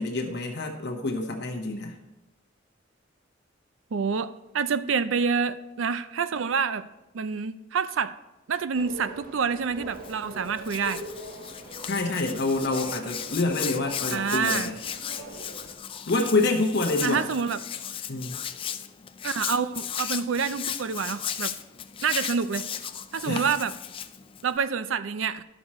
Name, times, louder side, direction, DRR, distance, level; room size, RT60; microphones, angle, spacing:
voice 1, 0.0-2.0 11.9-14.8 16.1-17.3 18.1-18.4 23.2-23.5, left 2 dB, 55° left, 2 dB, 0.9 m, -27 dB
voice 2, 3.9-6.9 7.1-8.1 8.5-11.0 14.1-14.7 17.0-17.6 19.2-21.5 22.0-22.7 23.1-23.7 24.4-25.4, right 6 dB, 75° right, 13 dB, 0.5 m, -27 dB
sound 1, 8.7-15.7, right 1 dB, 50° right, 1.0 m, -42 dB
Hands, 9.9-24.6, left 9 dB, 25° left, 0.4 m, -36 dB
12.0 x 6.2 x 4.3 m, 1.0 s
head